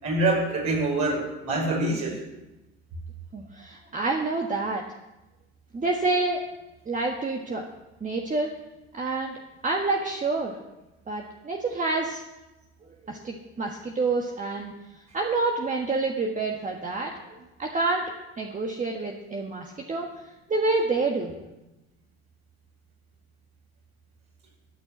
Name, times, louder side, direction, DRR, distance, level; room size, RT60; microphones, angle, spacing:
voice 1, 0.0-2.2, right 2 dB, 60° right, -3 dB, 5.4 m, -25 dB
voice 2, 3.3-4.8 5.7-6.4 6.9-7.6 8.0-8.5 8.9-9.3 9.6-10.5 11.1-12.2 13.0-14.7 15.1-17.1 17.6-18.0 18.4-20.1 20.5-21.3, right 3 dB, 25° right, 1 dB, 1.5 m, -27 dB
13.0 x 6.1 x 8.1 m, 1.0 s
hypercardioid pair, 80°, 32 cm